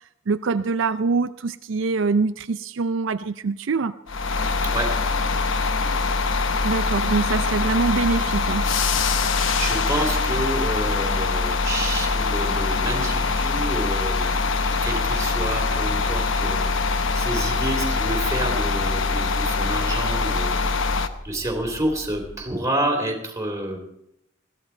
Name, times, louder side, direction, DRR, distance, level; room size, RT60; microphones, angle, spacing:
voice 1, 0.3-3.9 6.6-8.7, right 4 dB, 70° right, 11 dB, 0.5 m, -24 dB
sound 1, 4.1-21.1, left 4 dB, 75° left, 0.9 m, -23 dB
Church bell, 6.1-22.4, equal, 20° left, 6.9 m, -40 dB
voice 2, 9.6-14.5 14.8-23.8, right 1 dB, 15° right, 2 dB, 3.1 m, -29 dB
20.5 x 14.5 x 4.5 m, 0.80 s
head